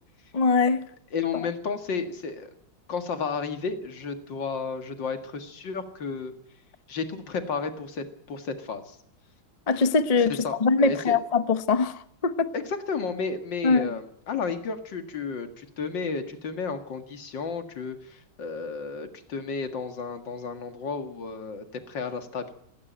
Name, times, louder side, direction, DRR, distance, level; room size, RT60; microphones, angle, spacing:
voice 1, 0.3-0.8 9.7-11.9 12.2-12.5 13.6-13.9, left 4 dB, 45° left, 0.4 m, -22 dB
voice 2, 1.1-2.5 2.9-6.3 6.9-9.0 10.2-11.2 12.5-22.5, left 5 dB, 65° left, 2.5 m, -32 dB
17.0 x 17.0 x 9.2 m
omnidirectional pair, 2.2 m